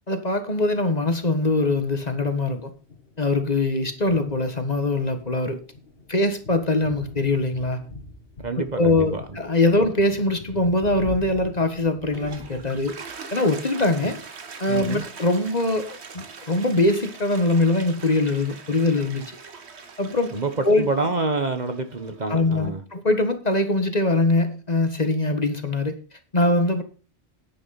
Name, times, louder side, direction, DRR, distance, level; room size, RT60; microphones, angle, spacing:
voice 1, 0.1-2.7 3.2-5.6 6.1-7.9 8.6-12.9 13.3-14.2 14.6-15.9 16.1-19.4 20.0-20.3 20.6-20.9 22.3-25.9 26.3-26.8, left 2 dB, 40° left, 1.6 m, -22 dB
Thunder, 0.6-13.1, left 2 dB, 65° left, 2.3 m, -44 dB
voice 2, 8.4-9.2 14.7-15.0 20.3-20.5 20.8-22.8, right 3 dB, 40° right, 1.4 m, -27 dB
Toilet flush, 12.0-22.2, right 5 dB, 90° right, 1.6 m, -42 dB
10.5 x 10.0 x 4.2 m
omnidirectional pair, 1.1 m